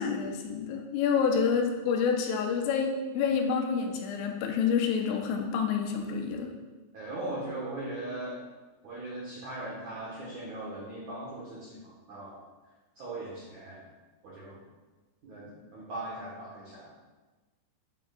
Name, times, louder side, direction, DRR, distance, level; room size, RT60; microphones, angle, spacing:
voice 1, 0.0-6.5, left 6 dB, 90° left, 2 dB, 2.9 m, -28 dB
voice 2, 6.9-8.4 8.8-12.3 13.0-13.8 14.2-14.6 15.2-16.9, right 2 dB, 75° right, -7 dB, 1.7 m, -39 dB
8.6 x 6.5 x 2.3 m, 1.2 s
omnidirectional pair, 5.1 m